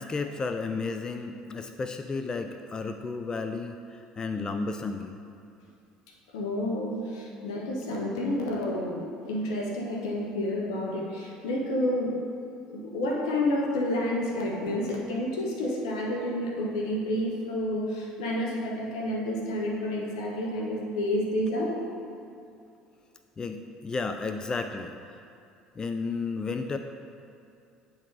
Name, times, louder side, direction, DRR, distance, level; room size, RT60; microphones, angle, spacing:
voice 1, 0.0-3.7 4.2-5.2 23.4-25.0 25.8-26.8, left 4 dB, 25° left, 7 dB, 0.4 m, -32 dB
voice 2, 6.3-12.1 12.7-21.8, left 1 dB, 80° left, 0 dB, 1.1 m, -29 dB
8.7 x 3.9 x 4.7 m, 2.5 s
hypercardioid pair, 70°, 3 cm